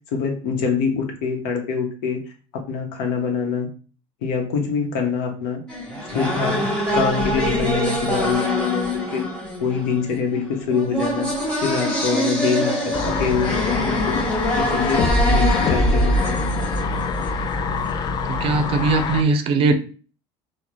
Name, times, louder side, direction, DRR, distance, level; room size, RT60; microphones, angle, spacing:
voice 1, 0.1-2.2 2.5-3.7 4.2-5.6 6.1-6.6 6.9-9.3 9.6-11.3 11.6-14.2 14.6-16.4, left 6 dB, 80° left, 3 dB, 0.8 m, -24 dB
sound 1, 5.7-17.6, equal, 5° left, 1.1 m, -25 dB
sound 2, 12.9-19.2, left 2 dB, 35° left, 0.4 m, -23 dB
voice 2, 17.9-19.7, right 3 dB, 45° right, 8 dB, 0.5 m, -21 dB
3.8 x 2.1 x 3.0 m, 0.39 s
supercardioid pair, 115°, 13 cm